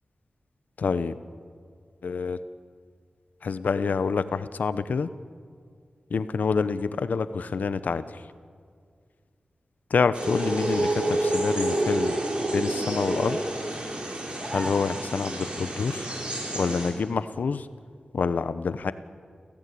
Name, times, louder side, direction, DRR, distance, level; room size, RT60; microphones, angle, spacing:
voice 1, 0.8-1.2 2.0-2.4 3.4-5.1 6.1-8.2 9.9-12.2 12.5-13.4 14.5-16.1 16.5-17.7 18.1-18.9, left 5 dB, 75° left, 13 dB, 0.9 m, -27 dB
sound 1, 10.1-16.9, right 1 dB, 35° right, 4.5 m, -29 dB
sound 2, 11.0-15.6, equal, 15° right, 2.8 m, -42 dB
29.5 x 15.5 x 8.5 m, 2.1 s
wide cardioid pair, 120°, 3 cm